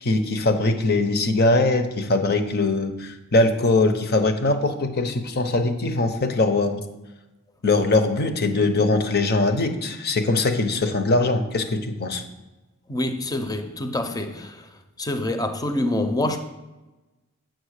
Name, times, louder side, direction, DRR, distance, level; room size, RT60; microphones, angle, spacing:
voice 1, 0.0-6.8 7.6-12.2, left 2 dB, 50° left, 0.9 m, -21 dB
voice 2, 12.9-14.7 15.0-16.4, left 1 dB, 20° left, 0.6 m, -26 dB
7.7 x 7.6 x 6.5 m
head